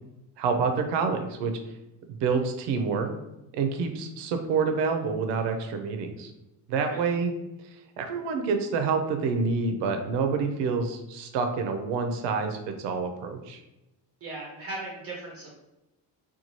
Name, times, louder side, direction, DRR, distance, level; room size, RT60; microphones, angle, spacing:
voice 1, 0.4-1.5 2.1-3.1 3.5-6.3 6.7-7.3 8.0-13.6, right 5 dB, 85° right, 6 dB, 0.6 m, -27 dB
voice 2, 14.2-15.5, right 2 dB, 35° right, -3 dB, 0.5 m, -38 dB
2.6 x 2.3 x 2.9 m, 0.95 s
cardioid pair, 165°, 41 cm